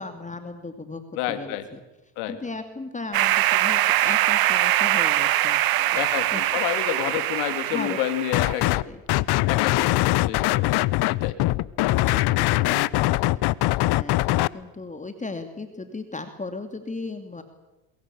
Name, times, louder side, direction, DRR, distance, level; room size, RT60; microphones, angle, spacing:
voice 1, 0.0-1.0 1.3-1.8 2.3-6.1 6.3-6.4 6.8-7.0 7.7-8.0 8.3-9.3 12.0-13.5 13.9-17.4, left 3 dB, 15° left, 8 dB, 2.5 m, -37 dB
voice 2, 1.2-1.6 2.2-2.4 5.9-8.8 9.4-11.3, left 12 dB, 75° left, 10 dB, 3.2 m, -29 dB
sound 1, 3.1-8.7, right 14 dB, 45° right, 1.2 m, -23 dB
sound 2, 8.3-8.8 9.1-14.5, left 18 dB, 55° left, 0.8 m, -22 dB
23.0 x 22.0 x 8.4 m, 1.0 s
supercardioid pair, 90°, 48 cm